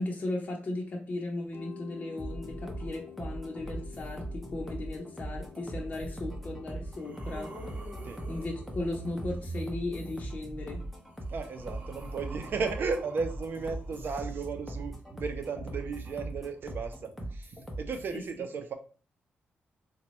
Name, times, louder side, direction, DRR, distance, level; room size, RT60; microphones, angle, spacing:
voice 1, 0.0-7.5 8.3-10.8 18.1-18.2, left 2 dB, 35° left, -2 dB, 0.8 m, -36 dB
Mallet percussion, 1.5-10.3, left 10 dB, 65° left, 0.5 m, -52 dB
sound 1, 2.2-18.2, right 1 dB, ahead, 0.8 m, -40 dB
sound 2, 6.0-6.1 6.6-9.4 10.6-14.5 15.5-15.6, equal, 35° right, 0.9 m, -50 dB
voice 2, 11.3-18.7, right 5 dB, 60° right, 6 dB, 0.6 m, -35 dB
3.9 x 2.3 x 3.0 m, 0.39 s
cardioid pair, 95°, 4 cm